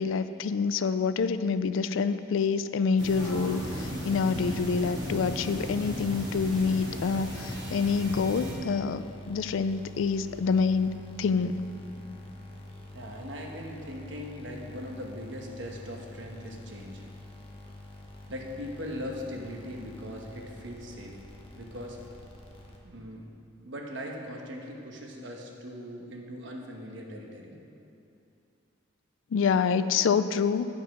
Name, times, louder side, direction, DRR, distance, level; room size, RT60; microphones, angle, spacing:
voice 1, 0.0-10.9 11.2-11.6 29.3-30.7, left 5 dB, 85° left, 12 dB, 0.4 m, -27 dB
sound 1, 3.0-8.5, equal, 20° right, 2.0 m, -36 dB
sound 2, 4.4-23.2, left 1 dB, 30° left, 1.0 m, -47 dB
voice 2, 12.9-17.0 18.3-21.2 21.5-22.0 22.8-23.3 23.6-27.6, equal, 70° right, 0 dB, 1.2 m, -40 dB
9.8 x 5.5 x 6.0 m, 2.6 s
head